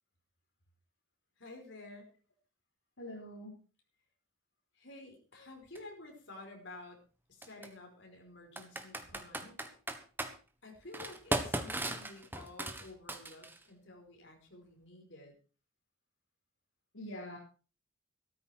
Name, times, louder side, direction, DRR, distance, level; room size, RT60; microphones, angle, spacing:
voice 1, 1.4-2.1 4.7-7.0 7.3-9.6 10.6-15.4, left 2 dB, 60° left, 1 dB, 5.3 m, -51 dB
voice 2, 3.0-3.5 5.4-5.5 16.9-17.4, left 1 dB, 80° left, -1 dB, 4.2 m, -44 dB
Computer keyboard, 5.7-5.8 7.4-7.7 8.6-10.3 10.9-13.6, right 1 dB, 10° right, 1.4 m, -37 dB
14.0 x 13.5 x 4.6 m, 0.35 s
head